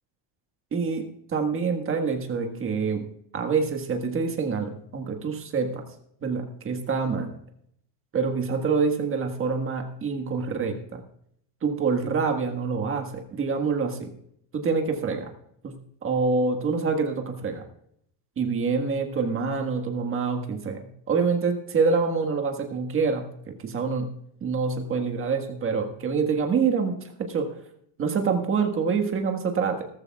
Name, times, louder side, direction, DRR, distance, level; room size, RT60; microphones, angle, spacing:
voice 1, 0.7-3.1 3.3-5.8 6.2-7.3 8.1-11.0 11.6-14.1 14.5-15.3 15.6-15.7 16.0-17.6 18.4-24.1 24.4-27.5 28.0-29.8, right 5 dB, 25° right, 4 dB, 1.6 m, -26 dB
18.0 x 14.0 x 2.3 m, 0.69 s
cardioid pair, 170°, 46 cm